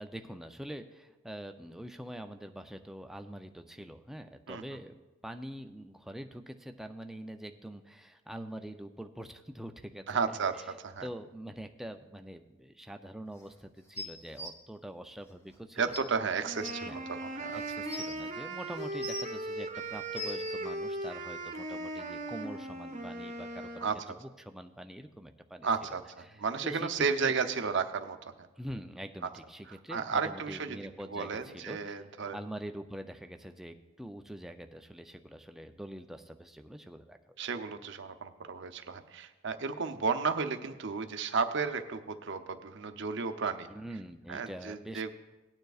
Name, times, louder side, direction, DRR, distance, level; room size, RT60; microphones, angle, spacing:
voice 1, 0.0-10.6 11.0-16.1 16.8-17.0 17.5-23.9 24.2-25.7 26.2-26.9 27.2-27.3 28.6-32.0 32.3-37.4 43.7-45.1, equal, ahead, 6 dB, 0.4 m, -44 dB
voice 2, 10.1-10.5 10.8-11.1 15.8-17.6 23.8-24.0 25.6-26.0 26.4-28.3 29.9-30.8 31.1-32.4 37.4-43.7 44.3-45.1, right 5 dB, 60° right, 7 dB, 0.7 m, -33 dB
sound 1, 13.9-14.5 15.5-15.6 15.9-16.0 16.6-16.7 17.5-18.1 18.8-19.4 19.9-20.5 21.5-21.6, equal, 15° left, 0.8 m, -40 dB
sound 2, 16.4-23.9, right 2 dB, 40° right, 0.9 m, -38 dB
18.0 x 9.2 x 2.4 m, 1.1 s
head